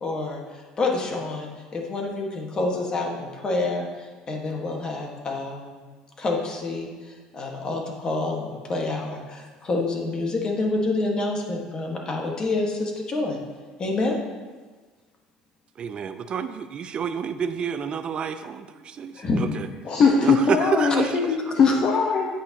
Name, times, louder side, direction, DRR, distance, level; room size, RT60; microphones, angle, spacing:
voice 1, 0.0-5.8 6.2-13.4 13.8-14.2 19.1-19.5 21.6-21.7, left 2 dB, 35° left, 0 dB, 1.5 m, -28 dB
voice 2, 15.8-19.7 20.2-21.1, right 7 dB, 40° right, 10 dB, 0.6 m, -29 dB
voice 3, 19.9-22.3, left 4 dB, 50° left, 0 dB, 1.1 m, -20 dB
8.6 x 8.6 x 2.9 m, 1.4 s
supercardioid pair, 100°, 3 cm